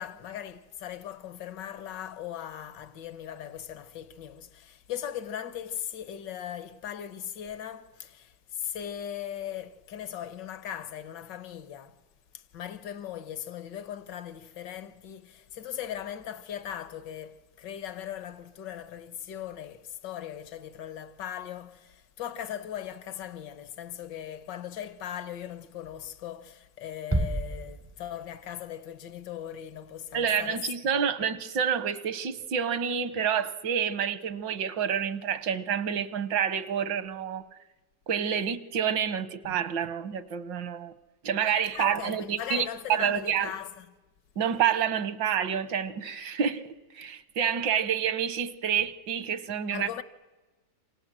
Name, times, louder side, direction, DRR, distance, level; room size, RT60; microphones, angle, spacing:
voice 1, 0.0-12.0 12.3-30.7 39.4-39.6 41.7-43.9 49.7-50.0, left 10 dB, 75° left, 1.7 m, -39 dB
Bass drum, 27.1-28.5, right 1 dB, 20° right, 0.4 m, -31 dB
voice 2, 30.1-37.4 38.1-40.9 41.2-43.5 44.4-49.9, right 8 dB, 80° right, 1.7 m, -28 dB
28.0 x 26.5 x 7.5 m
omnidirectional pair, 2.0 m